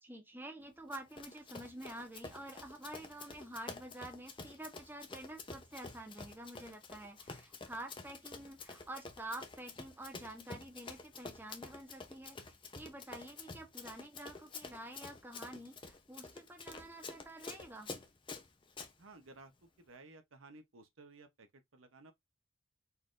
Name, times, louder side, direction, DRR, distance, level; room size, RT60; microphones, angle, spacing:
voice 1, 0.0-12.4 12.7-17.9, right 1 dB, 10° right, 0.8 m, -48 dB
Run, 0.9-18.9, left 3 dB, 25° left, 0.6 m, -49 dB
voice 2, 19.0-22.1, right 3 dB, 80° right, 0.9 m, -57 dB
4.3 x 2.5 x 3.7 m
head